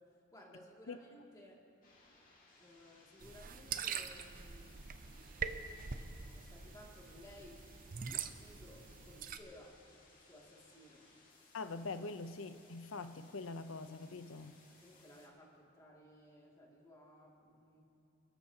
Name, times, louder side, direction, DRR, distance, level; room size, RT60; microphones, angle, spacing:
voice 1, 0.0-1.6 2.6-4.9 5.9-7.6 7.9-9.8 10.1-11.1 14.4-17.8, left 1 dB, 15° left, -3 dB, 2.4 m, -59 dB
sound 1, 1.8-15.3, left 3 dB, 40° left, 2.1 m, -65 dB
sound 2, 3.2-9.4, right 6 dB, 40° right, 0.6 m, -44 dB
voice 2, 11.5-14.6, left 3 dB, 70° left, 11 dB, 0.7 m, -44 dB
29.5 x 12.5 x 2.9 m, 2.9 s
head